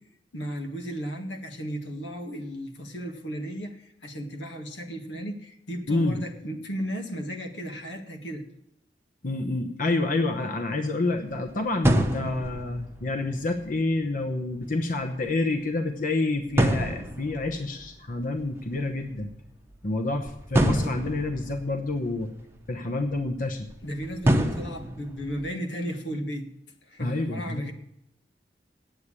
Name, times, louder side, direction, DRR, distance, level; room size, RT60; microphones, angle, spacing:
voice 1, 0.3-8.4 23.8-26.5 26.8-27.7, equal, 85° left, 3 dB, 1.7 m, -35 dB
voice 2, 5.9-6.2 9.2-19.3 19.8-22.3 22.7-23.7 27.0-27.7, left 2 dB, 50° left, 6 dB, 0.9 m, -28 dB
sound 1, 11.2-11.5 11.8-14.0 14.3-14.6 15.0-15.1 15.3-15.4 16.4-19.5 19.7-22.6 22.9-23.2 23.7-25.5, right 1 dB, 15° right, 0.8 m, -27 dB
9.4 x 8.2 x 8.6 m, 0.77 s
head